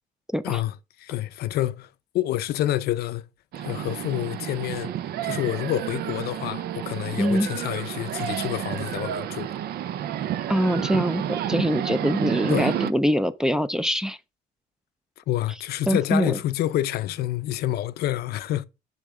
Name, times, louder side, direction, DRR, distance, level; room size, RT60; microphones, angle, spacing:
voice 1, 0.4-3.2 3.6-4.9 5.2-9.5 12.5-12.7 15.2-18.7, left 14 dB, 70° left, 0.6 m, -28 dB
sound 1, 3.5-12.9, right 10 dB, 65° right, 0.6 m, -30 dB
voice 2, 7.2-7.5 10.5-14.2 15.9-16.4, equal, 5° right, 0.5 m, -23 dB
6.9 x 6.5 x 3.7 m
cardioid pair, 110°, 17 cm